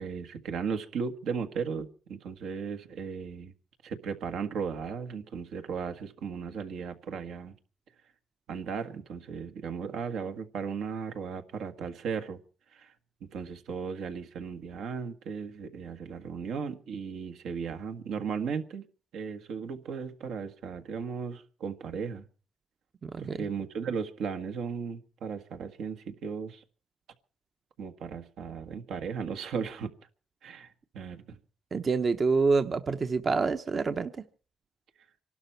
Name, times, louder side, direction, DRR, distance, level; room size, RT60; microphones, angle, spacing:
voice 1, 0.0-3.5 3.8-7.5 8.5-12.4 12.7-12.9 13.2-18.9 19.1-22.2 23.2-26.6 27.8-29.9 30.4-31.4, right 6 dB, 80° right, 1.6 m, -36 dB
voice 2, 23.0-23.4 31.7-34.1, right 4 dB, 40° right, 0.9 m, -27 dB
26.5 x 12.0 x 4.4 m
cardioid pair, 90°, 0 cm